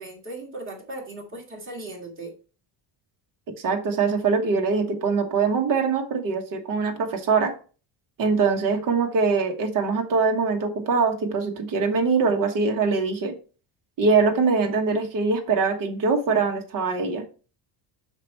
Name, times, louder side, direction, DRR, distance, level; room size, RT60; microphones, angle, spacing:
voice 1, 0.0-2.3, right 2 dB, 25° right, 2.3 m, -37 dB
voice 2, 3.6-7.5 8.2-13.3 14.0-17.2, right 4 dB, 45° right, 1.3 m, -23 dB
5.9 x 4.5 x 4.3 m
cardioid pair, 160°, 46 cm